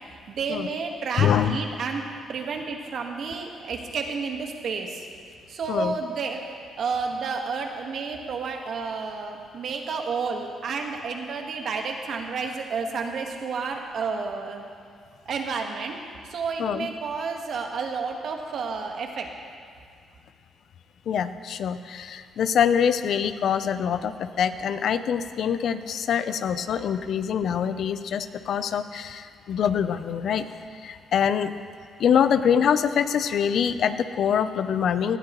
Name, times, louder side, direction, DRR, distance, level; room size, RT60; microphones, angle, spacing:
voice 1, 0.3-2.0 2.3-5.1 5.5-6.4 6.8-14.6 15.2-16.0 16.3-19.3, right 4 dB, 65° right, 3 dB, 1.4 m, -30 dB
voice 2, 1.2-1.6 5.7-5.9 16.6-16.9 21.1-30.5 30.8-31.5 32.0-35.2, left 8 dB, 65° left, 12 dB, 0.5 m, -24 dB
18.5 x 12.0 x 3.1 m, 2.2 s
cardioid pair, 90°, 0 cm